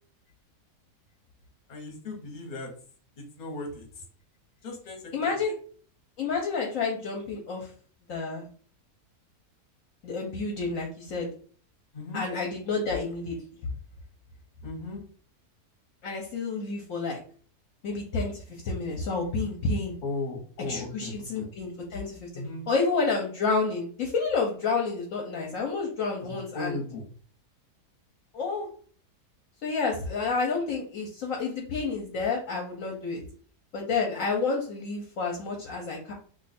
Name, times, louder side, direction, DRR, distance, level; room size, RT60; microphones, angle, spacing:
voice 1, 1.7-2.7 3.2-4.0 4.6-5.4 11.9-12.2 14.6-15.0 20.0-21.5 22.3-22.7 26.2-27.1, left 2 dB, 40° left, 1 dB, 0.8 m, -37 dB
voice 2, 5.1-5.5 6.2-7.7 8.1-8.5 10.0-11.3 12.1-13.4 16.0-17.2 17.8-20.0 20.7-22.3 22.7-26.8 28.3-28.7 29.6-33.2 33.7-36.1, left 4 dB, 65° left, 0 dB, 0.9 m, -29 dB
2.6 x 2.3 x 4.1 m, 0.43 s
omnidirectional pair, 1.7 m